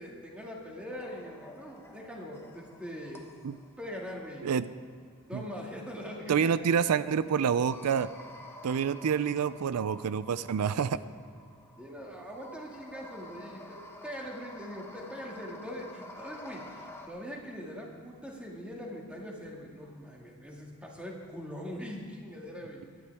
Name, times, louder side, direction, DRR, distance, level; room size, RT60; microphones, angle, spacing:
voice 1, 0.0-3.2 3.8-4.5 5.3-6.5 11.8-22.8, equal, 5° right, -2 dB, 2.1 m, -42 dB
sound 1, 0.9-17.1, left 1 dB, 10° left, 1.0 m, -50 dB
voice 2, 6.3-8.1 8.6-11.0, right 7 dB, 90° right, 15 dB, 0.4 m, -27 dB
19.5 x 12.5 x 3.5 m, 2.2 s
head